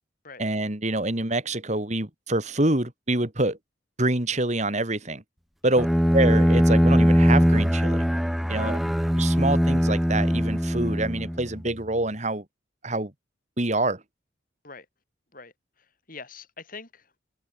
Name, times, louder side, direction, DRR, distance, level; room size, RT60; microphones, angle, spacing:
voice 1, 0.4-3.6 4.0-5.2 5.6-5.9 6.1-8.1 8.5-8.8 9.2-12.4 12.8-13.1 13.6-14.0, right 2 dB, 35° right, 2.5 m, -26 dB
Bowed string instrument, 5.8-11.6, equal, ahead, 0.7 m, -21 dB
voice 2, 15.3-17.2, left 4 dB, 45° left, 5.9 m, -44 dB
head